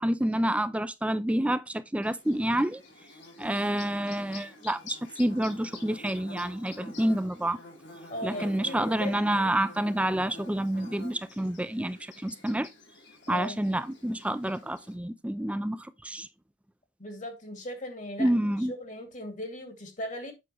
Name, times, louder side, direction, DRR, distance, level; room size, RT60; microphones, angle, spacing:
voice 1, 0.0-2.8 3.4-7.6 8.2-12.7 13.3-16.3 18.2-18.7, right 1 dB, 5° right, 0.5 m, -28 dB
Bird / Buzz, 2.0-14.9, left 2 dB, 90° left, 3.4 m, -48 dB
voice 2, 8.1-9.4 13.3-13.6 17.0-20.3, left 1 dB, 45° left, 2.4 m, -38 dB
8.5 x 6.4 x 3.1 m
head